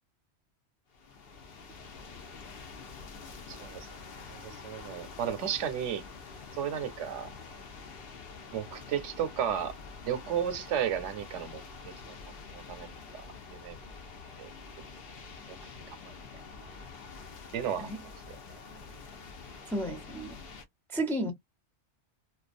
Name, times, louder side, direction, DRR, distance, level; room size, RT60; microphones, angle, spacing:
sound 1, 0.9-20.6, left 4 dB, 60° left, 0.7 m, -47 dB
voice 1, 3.5-3.9 4.3-6.0 6.6-7.3 8.5-9.8 10.0-12.1 12.5-12.9 13.1-13.2 13.5-13.8 14.4-14.5 15.5-15.6 15.9-16.1 17.5-17.9 18.3-18.4, right 9 dB, 85° right, 0.9 m, -33 dB
voice 2, 19.7-20.4 20.9-21.3, right 1 dB, 5° left, 0.4 m, -32 dB
2.3 x 2.2 x 2.4 m
omnidirectional pair, 1.2 m